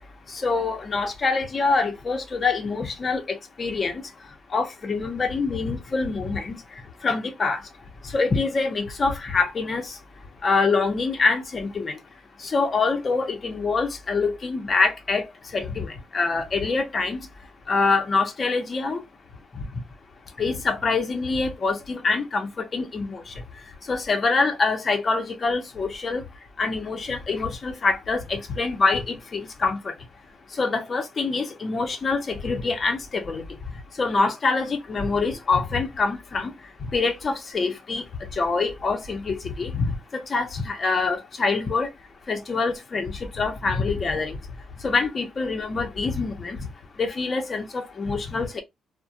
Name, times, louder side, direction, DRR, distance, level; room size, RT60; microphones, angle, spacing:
voice 1, 0.3-4.0 4.5-6.6 7.0-7.6 8.1-9.9 10.4-12.0 12.4-15.2 15.5-17.2 17.7-19.0 20.4-23.2 23.9-26.2 26.6-29.9 30.6-33.4 34.0-36.5 36.9-38.0 38.4-39.8 40.1-41.9 42.3-44.4 44.8-46.6 47.0-48.6, left 4 dB, 40° left, 0.7 m, -25 dB
2.3 x 2.2 x 2.8 m
cardioid pair, 90°, 0 cm